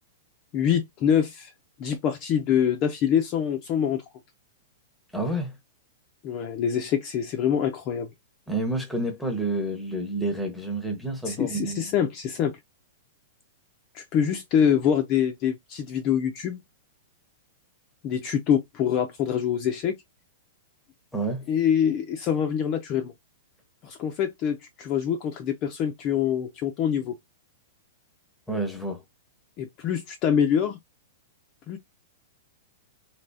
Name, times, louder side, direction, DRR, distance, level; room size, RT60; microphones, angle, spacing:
voice 1, 0.5-1.5 1.8-4.0 6.2-8.1 11.3-12.5 13.9-16.6 18.0-20.0 21.5-23.1 23.8-27.2 29.6-30.8 31.7-31.8, left 8 dB, 25° left, 0.5 m, -25 dB
voice 2, 5.1-5.6 8.5-11.9 21.1-21.5 28.5-29.0, right 2 dB, ahead, 0.8 m, -29 dB
3.3 x 2.8 x 2.7 m
supercardioid pair, 170°, 0 cm